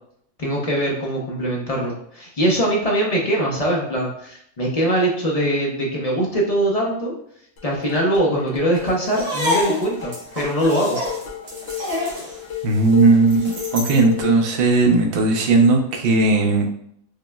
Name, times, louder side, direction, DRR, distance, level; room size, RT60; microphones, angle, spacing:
voice 1, 0.4-7.1 7.6-11.0, right 1 dB, 40° left, -2 dB, 0.5 m, -22 dB
sound 1, 7.6-14.5, left 11 dB, 60° left, 0.9 m, -34 dB
sound 2, 9.1-14.1, left 2 dB, 90° right, 1.3 m, -27 dB
voice 2, 12.6-16.7, right 3 dB, 60° right, 3 dB, 0.7 m, -17 dB
4.8 x 2.1 x 2.2 m, 0.71 s
omnidirectional pair, 1.3 m